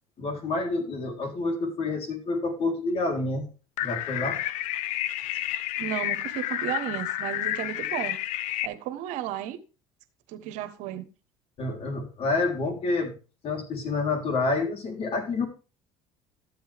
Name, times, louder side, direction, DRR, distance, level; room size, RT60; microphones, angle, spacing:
voice 1, 0.2-3.5 3.8-4.4 11.6-13.2 13.4-15.5, left 3 dB, 50° left, 3 dB, 3.5 m, -28 dB
sound 1, 3.8-8.7, left 14 dB, 70° left, 0.6 m, -30 dB
voice 2, 5.8-8.2 8.6-9.6 10.3-11.1, right 12 dB, 70° right, 11 dB, 1.2 m, -33 dB
13.0 x 7.8 x 3.5 m, 0.34 s
supercardioid pair, 90°, 13 cm